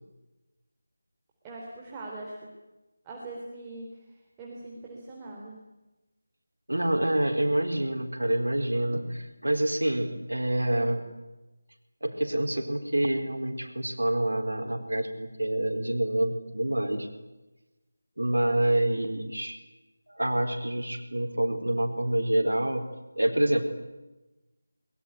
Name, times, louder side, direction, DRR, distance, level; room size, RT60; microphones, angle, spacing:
voice 1, 1.4-2.5 3.0-5.6, right 2 dB, 15° right, -3 dB, 4.0 m, -42 dB
voice 2, 6.7-11.0 12.0-17.1 18.2-19.6 20.1-22.9 23.2-23.7, right 1 dB, 80° right, 5 dB, 4.4 m, -27 dB
24.0 x 22.0 x 9.5 m, 1.1 s
figure-of-eight pair, 165°, 0 cm